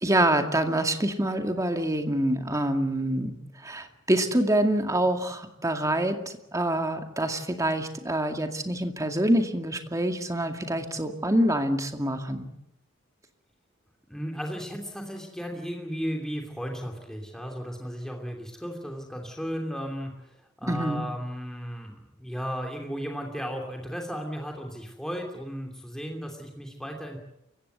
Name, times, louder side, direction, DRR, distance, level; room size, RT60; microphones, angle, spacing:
voice 1, 0.0-3.4 3.6-6.2 6.5-12.5 20.6-21.0, right 1 dB, 15° right, 5 dB, 2.2 m, -26 dB
voice 2, 14.1-20.3 20.6-27.2, equal, 5° left, 2 dB, 2.8 m, -35 dB
28.5 x 16.0 x 8.2 m, 0.85 s
head